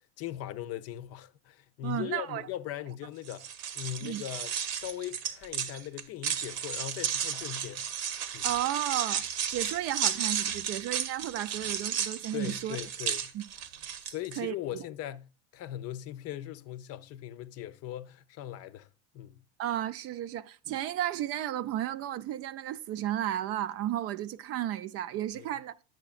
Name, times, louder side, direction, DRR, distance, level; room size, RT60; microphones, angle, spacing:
voice 1, 0.2-7.9 8.3-8.5 12.3-13.3 14.0-15.3 15.5-18.9 19.1-19.4 25.4-25.5, left 12 dB, 45° left, 0.6 m, -39 dB
voice 2, 1.8-2.5 4.0-4.2 8.4-9.2 9.5-12.8 13.3-13.4 14.4-14.8 19.6-25.7, right 12 dB, 45° right, 0.6 m, -33 dB
sound 1, 3.2-14.4, right 8 dB, 65° right, 1.1 m, -33 dB
10.5 x 7.8 x 2.4 m
hypercardioid pair, 80°, 34 cm